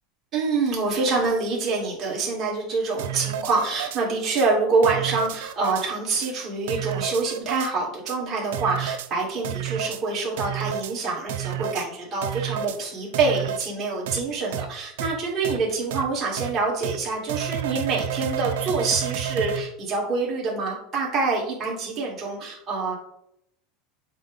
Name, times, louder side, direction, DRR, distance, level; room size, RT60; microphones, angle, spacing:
voice 1, 0.3-23.0, right 4 dB, 30° right, -5 dB, 2.4 m, -26 dB
sound 1, 3.0-4.0 4.4-4.5 4.8-5.9 6.2-6.3 6.7-7.7 8.1-8.2 8.5-9.1 9.4-10.0 10.4-10.9 11.3-11.9 12.2-12.8 13.1-13.7 14.1-14.2 14.5-14.7 15.0-15.1 15.4-15.6 15.9-16.0 16.4-16.5 16.8-17.0 17.3-19.6, right 10 dB, 85° right, 0.5 m, -30 dB
7.3 x 2.5 x 5.4 m, 0.75 s
supercardioid pair, 135°, 0 cm